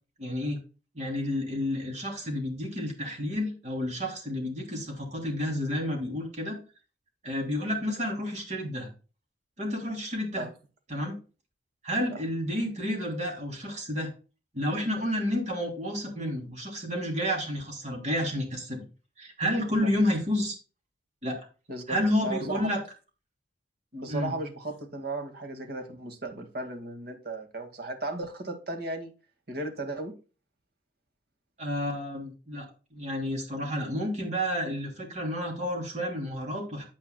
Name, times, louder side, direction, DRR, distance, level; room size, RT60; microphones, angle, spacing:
voice 1, 0.2-0.6 0.9-6.6 7.2-8.9 9.6-10.5 10.9-11.1 11.8-14.1 14.5-18.8 19.2-20.6 21.2-21.4 21.9-22.8 24.1-24.3 31.6-36.8, left 1 dB, 40° right, 1 dB, 3.1 m, -30 dB
voice 2, 21.7-22.4 23.9-29.1 29.5-30.1, right 2 dB, 55° right, 6 dB, 2.0 m, -35 dB
9.2 x 8.5 x 2.3 m, 0.33 s
head